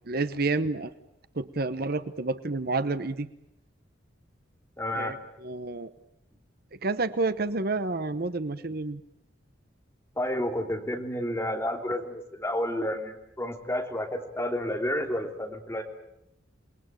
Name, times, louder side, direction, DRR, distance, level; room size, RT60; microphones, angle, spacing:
voice 1, 0.1-0.9 1.3-3.3 4.9-5.2 5.4-5.9 6.8-9.0, right 3 dB, 50° right, 13 dB, 1.0 m, -29 dB
voice 2, 4.8-5.1 10.2-15.8, left 1 dB, 15° left, 2 dB, 3.3 m, -30 dB
28.5 x 20.5 x 9.1 m, 0.82 s
head